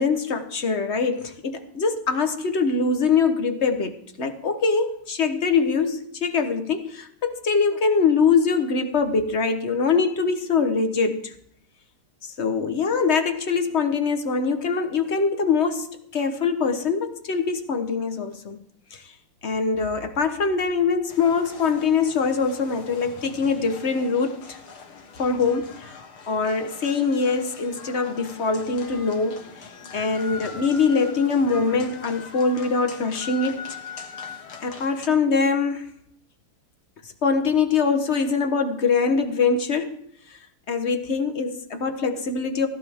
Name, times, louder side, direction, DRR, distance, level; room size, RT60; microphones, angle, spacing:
voice 1, 0.0-11.3 12.2-18.6 18.9-19.0 19.4-24.6 25.2-29.7 29.9-33.6 34.6-35.9 37.2-40.0 40.7-42.7, left 5 dB, 35° left, 7 dB, 1.3 m, -23 dB
sound 1, 21.1-35.1, left 5 dB, 70° left, 2.4 m, -41 dB
16.5 x 15.0 x 3.7 m, 0.68 s
omnidirectional pair, 2.4 m